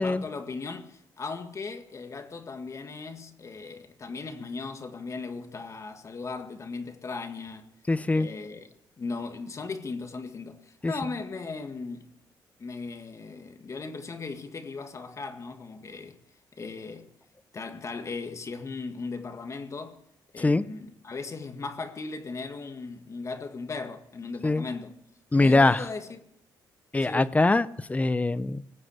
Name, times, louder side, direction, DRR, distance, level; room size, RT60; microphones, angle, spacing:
voice 1, 0.0-7.7 8.1-8.7 9.0-12.1 12.6-16.2 16.6-17.1 17.5-20.0 20.3-25.0 25.3-26.2 27.0-27.4, left 4 dB, 35° left, 1.8 m, -37 dB
voice 2, 7.9-8.3 10.8-10.9 20.4-20.6 24.4-24.6 25.3-25.8 26.9-28.6, left 2 dB, 15° left, 0.7 m, -23 dB
20.0 x 7.7 x 8.0 m
cardioid pair, 85°, 8 cm